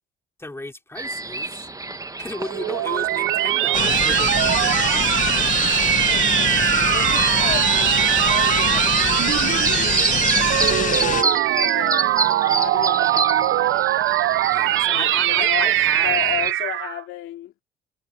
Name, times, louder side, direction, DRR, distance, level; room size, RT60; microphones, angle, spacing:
voice 1, 0.4-1.7 2.2-5.4 14.5-16.2, left 2 dB, 10° left, 3.1 m, -34 dB
sound 1, 1.0-16.5, right 3 dB, 15° right, 1.2 m, -30 dB
sound 2, 2.3-17.0, right 15 dB, 75° right, 0.5 m, -21 dB
voice 2, 2.6-3.1 5.9-9.8 10.9-13.9 14.8-17.5, left 13 dB, 85° left, 2.8 m, -34 dB
sound 3, 3.7-11.2, left 8 dB, 40° left, 0.7 m, -24 dB
cardioid pair, 90°, 20 cm